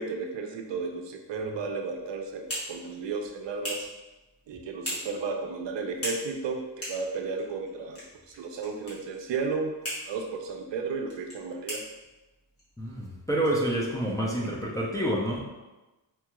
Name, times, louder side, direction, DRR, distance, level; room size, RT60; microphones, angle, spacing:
voice 1, 0.0-3.9 4.5-8.0 8.4-9.7 10.1-11.8, right 4 dB, 70° right, 3 dB, 0.6 m, -33 dB
sound 1, 1.9-14.3, equal, 30° left, 1.3 m, -42 dB
voice 2, 12.8-15.4, right 1 dB, 10° left, -4 dB, 0.3 m, -28 dB
4.4 x 2.3 x 2.9 m, 1.1 s
wide cardioid pair, 170°, 46 cm